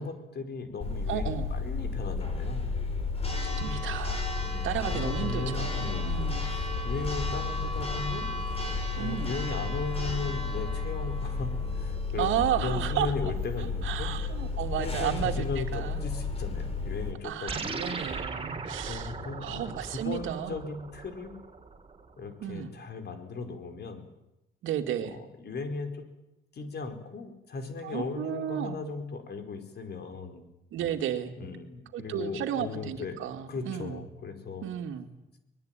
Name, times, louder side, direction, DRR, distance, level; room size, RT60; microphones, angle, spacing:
voice 1, 0.0-2.7 4.4-6.6 6.8-8.3 9.0-14.1 14.8-17.8 18.9-21.3 22.2-24.0 25.1-26.0 26.5-30.4 31.4-33.2 33.5-34.6, left 4 dB, 55° left, 7 dB, 4.7 m, -37 dB
Church bell, 0.8-17.1, left 3 dB, 30° left, 5.9 m, -32 dB
voice 2, 1.1-1.5 3.5-4.3 4.6-6.5 9.0-9.4 12.2-13.1 13.6-16.0 17.2-19.1 19.4-20.6 22.4-22.7 24.6-25.2 27.8-28.8 30.7-31.3 31.9-34.1 34.6-35.1, right 10 dB, 85° right, 7 dB, 2.4 m, -33 dB
sound 1, 17.5-22.1, right 4 dB, 30° right, 3.6 m, -38 dB
24.0 x 20.5 x 9.2 m, 0.94 s
cardioid pair, 90°, 20 cm